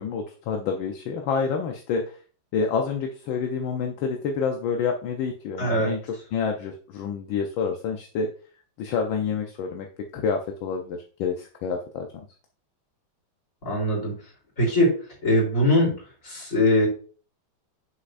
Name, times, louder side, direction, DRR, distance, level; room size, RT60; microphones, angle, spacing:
voice 1, 0.0-2.2 2.5-6.0 6.3-8.3 8.8-9.9 10.1-12.1, left 5 dB, 75° left, 3 dB, 1.5 m, -28 dB
voice 2, 5.6-5.9 13.6-14.1 14.6-14.9 15.2-15.9 16.3-16.9, left 1 dB, 40° left, -3 dB, 3.8 m, -21 dB
8.0 x 6.5 x 2.5 m, 0.40 s
omnidirectional pair, 2.2 m